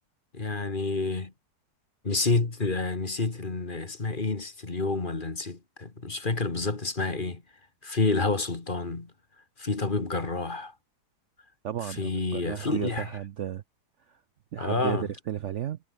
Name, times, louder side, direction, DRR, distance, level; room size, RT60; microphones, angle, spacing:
voice 1, 0.3-1.3 2.0-7.4 7.8-9.1 9.6-10.7 11.8-13.1 14.6-15.1, left 3 dB, 30° left, 2.0 m, -29 dB
voice 2, 11.6-13.6 14.5-15.0 15.3-15.8, right 10 dB, 60° right, 0.8 m, -33 dB
omnidirectional pair, 1.7 m